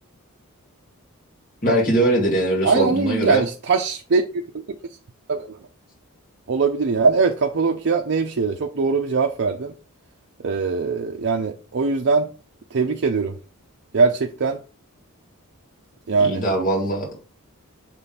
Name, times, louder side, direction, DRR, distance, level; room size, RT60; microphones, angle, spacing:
voice 1, 1.6-3.4 16.2-17.2, right 1 dB, 40° left, 2.3 m, -21 dB
voice 2, 2.6-4.4 5.3-5.6 6.5-9.7 10.4-12.3 12.7-13.4 13.9-14.6 16.1-16.4, right 4 dB, 55° right, 0.6 m, -21 dB
6.6 x 3.6 x 4.1 m
head